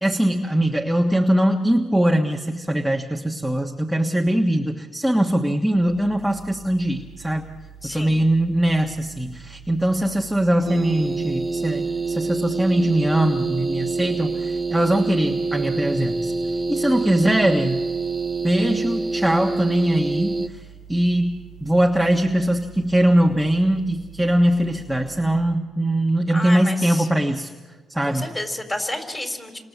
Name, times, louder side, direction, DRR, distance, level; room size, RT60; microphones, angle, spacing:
voice 1, 0.0-7.4 7.9-16.3 16.7-17.8 18.4-27.5 27.9-28.3, right 1 dB, ahead, 1 dB, 1.4 m, -21 dB
sound 1, 5.7-25.4, right 7 dB, 80° left, 6.2 m, -45 dB
voice 2, 7.8-8.2 17.3-17.4 26.3-27.1 28.0-29.6, left 1 dB, 20° left, 5 dB, 4.2 m, -30 dB
sound 2, 10.7-20.5, right 3 dB, 25° right, 1.0 m, -26 dB
29.5 x 26.0 x 7.3 m, 1.4 s
cardioid pair, 90°, 0 cm